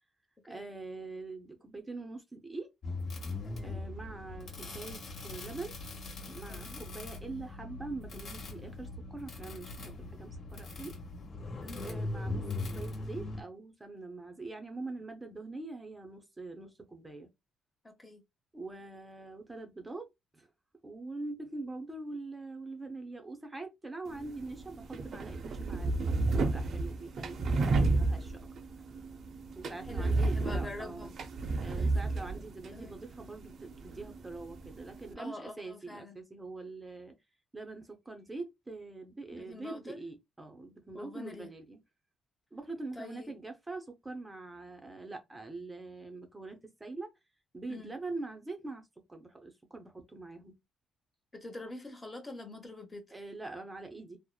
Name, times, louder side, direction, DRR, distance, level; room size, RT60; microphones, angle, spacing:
voice 1, 0.5-2.7 3.6-5.7 6.3-10.9 11.8-17.3 18.5-20.1 20.3-20.5 20.8-28.3 29.6-31.1 31.6-37.1 37.5-41.8 42.5-47.1 47.5-48.8 49.1-50.5 53.1-54.2, right 3 dB, 15° right, 0.6 m, -44 dB
sound 1, 2.8-13.4, left 2 dB, 55° left, 1.0 m, -40 dB
voice 2, 3.4-3.8 6.5-6.8 11.6-11.9 17.8-18.2 29.7-31.1 31.7-31.9 32.7-32.9 35.2-36.2 39.3-40.0 40.9-41.5 42.9-43.4 47.7-47.9 51.3-53.0, left 2 dB, 25° left, 0.8 m, -45 dB
sound 2, 24.1-35.1, right 3 dB, 60° right, 0.5 m, -32 dB
2.8 x 2.0 x 2.2 m
supercardioid pair, 70°, 0 cm